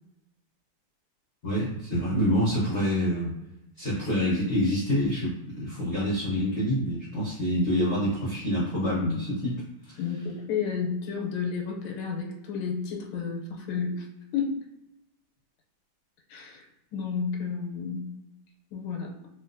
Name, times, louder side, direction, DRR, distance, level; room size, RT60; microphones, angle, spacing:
voice 1, 1.4-3.3 3.8-9.6 9.8-10.0, equal, 50° left, -8 dB, 0.9 m, -26 dB
voice 2, 10.0-14.0 14.3-14.6 16.3-16.6 16.9-18.1 18.7-19.1, left 6 dB, 90° left, 0 dB, 1.5 m, -31 dB
3.2 x 2.9 x 2.5 m, 0.93 s
omnidirectional pair, 2.3 m